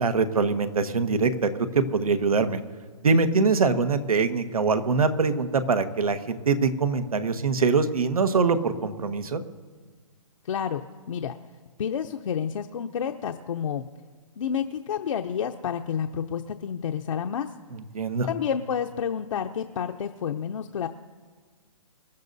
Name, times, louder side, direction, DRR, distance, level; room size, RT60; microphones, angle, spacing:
voice 1, 0.0-2.6 3.0-9.4 17.7-18.3, right 4 dB, 85° right, 9 dB, 1.3 m, -23 dB
voice 2, 10.4-10.8 11.1-11.3 11.8-13.8 14.4-17.5 18.3-20.9, left 8 dB, 60° left, 4 dB, 0.8 m, -29 dB
26.5 x 13.5 x 2.7 m, 1.5 s
hypercardioid pair, 150°, 18 cm